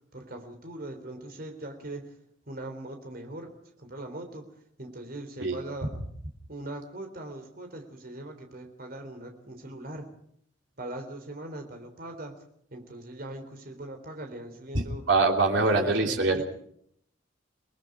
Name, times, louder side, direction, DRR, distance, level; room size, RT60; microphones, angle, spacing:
voice 1, 0.1-2.1 2.5-3.5 3.8-4.5 4.8-5.9 6.5-10.1 10.8-12.3 12.7-15.0 15.5-16.4, right 1 dB, 50° right, 5 dB, 3.7 m, -40 dB
voice 2, 14.7-16.4, right 3 dB, 80° right, 3 dB, 3.1 m, -24 dB
29.0 x 19.5 x 4.9 m, 0.67 s
head